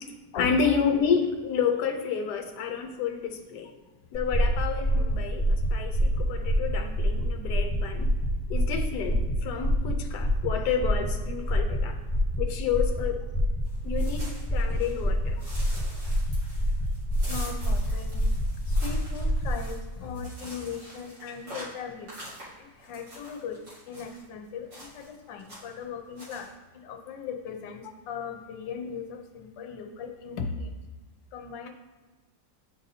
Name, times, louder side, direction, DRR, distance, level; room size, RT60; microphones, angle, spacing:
voice 1, 0.4-3.7 4.1-8.2 8.5-12.0 12.4-13.2 13.8-15.4, left 6 dB, 70° left, 4 dB, 1.2 m, -30 dB
sound 1, 4.1-19.6, equal, 20° left, 0.6 m, -26 dB
sound 2, 13.6-15.0 15.4-24.2 24.7-25.1 25.4-25.8 26.2-26.5, equal, 65° right, 2.7 m, -46 dB
voice 2, 17.3-18.2 18.7-22.1 22.8-23.6 23.9-26.5 26.8-30.7 31.3-31.7, left 6 dB, 90° left, 4 dB, 1.3 m, -38 dB
10.5 x 4.1 x 2.7 m, 1.3 s
omnidirectional pair, 1.9 m